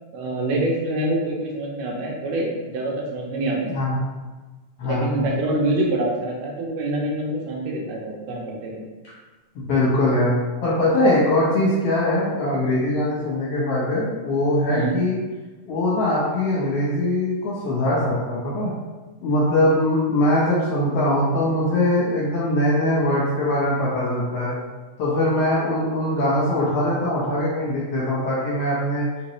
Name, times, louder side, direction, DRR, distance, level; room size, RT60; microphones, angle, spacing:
voice 1, 0.1-3.7 4.8-8.8 14.7-15.0, right 1 dB, 80° right, -2 dB, 2.2 m, -25 dB
voice 2, 9.5-10.3 10.6-15.2 15.7-18.7 19.2-24.6 25.0-29.1, left 1 dB, 70° left, -6 dB, 1.5 m, -21 dB
5.1 x 3.1 x 3.0 m, 1.3 s
omnidirectional pair, 3.8 m